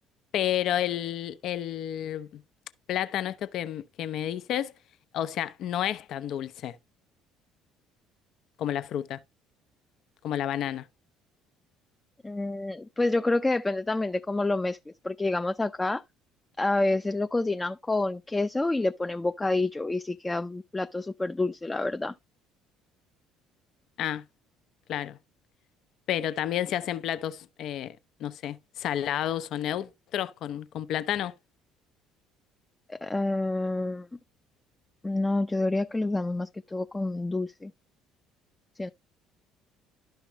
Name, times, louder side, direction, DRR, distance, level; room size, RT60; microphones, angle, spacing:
voice 1, 0.3-2.3 2.9-4.7 5.1-6.8 8.6-9.2 10.2-10.9 24.0-24.2 24.9-25.2 26.1-31.3, left 11 dB, 60° left, 0.6 m, -30 dB
voice 2, 12.2-14.8 15.0-16.0 16.6-22.1 32.9-34.1 35.0-37.7 38.8-38.9, left 2 dB, 15° left, 0.5 m, -28 dB
12.0 x 5.7 x 3.1 m
hypercardioid pair, 55°, 0 cm